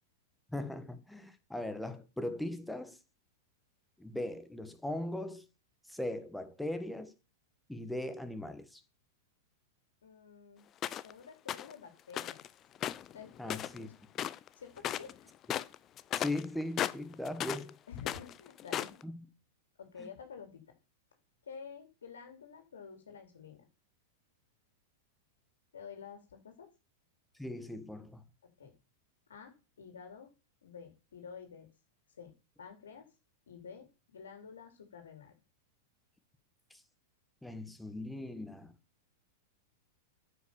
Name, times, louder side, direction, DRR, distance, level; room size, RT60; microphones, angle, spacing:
voice 1, 0.5-3.0 4.0-5.4 5.9-7.1 7.7-8.8 13.4-13.9 16.2-17.8 19.0-19.2 20.0-20.1 27.4-28.2 36.7-36.8 37.4-38.7, left 1 dB, 5° left, 1.4 m, -39 dB
voice 2, 10.0-10.7 11.0-12.4 13.1-13.9 14.5-15.3 17.9-19.0 19.8-20.7 21.4-23.6 25.7-26.7 28.6-28.7 29.3-30.3 30.6-31.7 32.2-32.3 32.6-33.1 33.5-35.3, left 6 dB, 90° left, 2.9 m, -49 dB
sound 1, 10.8-11.1 11.5-11.7 12.1-12.5 12.8-13.9 14.1-14.5 14.8-15.1 15.4-17.7 18.0-19.0, left 11 dB, 35° left, 0.6 m, -36 dB
9.4 x 5.8 x 6.9 m
hypercardioid pair, 115°, 0 cm